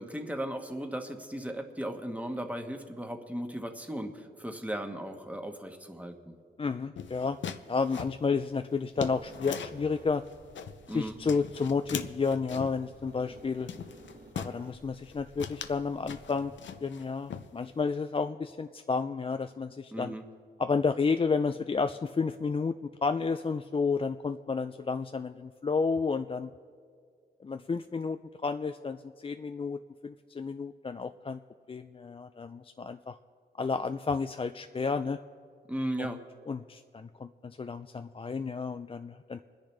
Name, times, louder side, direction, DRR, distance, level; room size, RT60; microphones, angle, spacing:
voice 1, 0.0-6.2 10.9-11.1 19.9-20.2 35.7-36.2, right 1 dB, 5° right, 4 dB, 1.4 m, -36 dB
voice 2, 6.6-7.4 7.7-10.2 10.9-13.7 14.3-16.5 16.8-20.1 20.6-22.8 23.0-26.5 27.4-31.4 31.7-33.2 33.6-35.2 36.0-36.2 36.5-39.4, left 4 dB, 30° left, 8 dB, 0.4 m, -31 dB
sound 1, 7.0-9.9 10.3-11.0 11.3-12.8 13.3-13.4 13.7-14.6 15.0-15.1 15.4-17.0 17.3-17.9, left 7 dB, 75° left, 0.6 m, -40 dB
sound 2, 8.9-16.6, right 2 dB, 60° right, 1.9 m, -54 dB
26.5 x 10.5 x 3.3 m, 2.2 s
cardioid pair, 75°, 19 cm